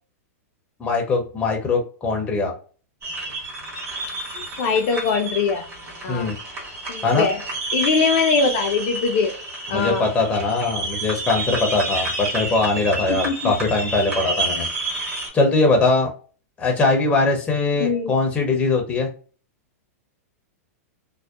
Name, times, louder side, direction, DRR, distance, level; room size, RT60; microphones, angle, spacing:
voice 1, 0.8-2.5 6.1-6.4 7.0-7.3 9.7-14.7 15.3-16.1 16.6-19.1, left 3 dB, 15° left, 1 dB, 0.6 m, -21 dB
sound 1, 3.0-15.3, right 2 dB, 25° right, 1.4 m, -29 dB
voice 2, 4.4-5.6 6.0-6.3 6.9-7.4 7.7-9.3 9.7-10.1 13.1-13.5 17.8-18.1, left 5 dB, 50° left, 5 dB, 0.4 m, -22 dB
2.6 x 2.1 x 2.3 m, 0.40 s
hypercardioid pair, 130°, 8 cm